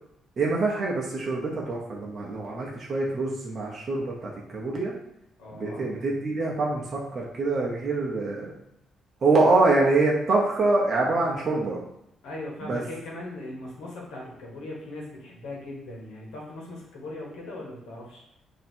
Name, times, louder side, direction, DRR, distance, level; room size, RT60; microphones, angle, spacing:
voice 1, 0.4-4.9 5.5-8.5 9.2-11.8 12.6-12.8, right 3 dB, 45° right, -3 dB, 0.8 m, -25 dB
voice 2, 5.4-5.8 12.2-18.2, left 2 dB, 90° left, -3 dB, 1.3 m, -39 dB
3.1 x 2.8 x 4.3 m, 0.82 s
cardioid pair, 90°, 0 cm